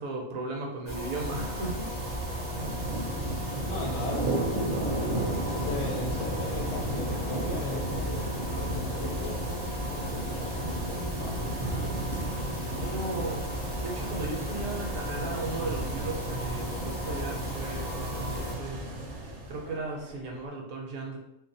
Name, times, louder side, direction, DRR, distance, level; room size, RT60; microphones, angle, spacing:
voice 1, 0.0-1.9 12.7-13.4 13.8-18.8 19.5-21.2, right 2 dB, 80° right, 0 dB, 1.0 m, -36 dB
sound 1, 0.9-18.5, equal, 30° left, 0.5 m, -37 dB
sound 2, 1.2-19.7, right 1 dB, 60° right, 0.6 m, -34 dB
voice 2, 3.6-4.4 5.4-8.3 8.6-11.5, left 2 dB, 60° left, -2 dB, 0.8 m, -38 dB
sound 3, 4.8-20.5, left 1 dB, 80° left, 0.3 m, -50 dB
2.6 x 2.0 x 2.6 m, 0.79 s
omnidirectional pair, 1.4 m